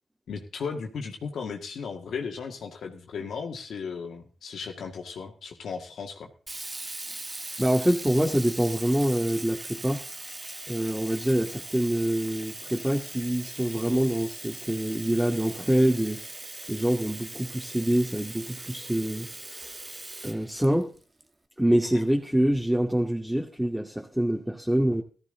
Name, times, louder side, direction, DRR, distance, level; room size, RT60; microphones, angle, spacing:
voice 1, 0.3-6.3 21.9-22.0, left 5 dB, 75° left, 3 dB, 2.0 m, -36 dB
Sink (filling or washing), 6.5-21.2, right 2 dB, 30° right, 1.5 m, -40 dB
voice 2, 7.6-10.0 10.7-16.2 16.7-19.8 20.2-20.9 21.6-25.0, right 1 dB, 5° right, 0 dB, 2.3 m, -25 dB
14.5 x 13.5 x 3.9 m, 0.37 s
supercardioid pair, 45°, 0 cm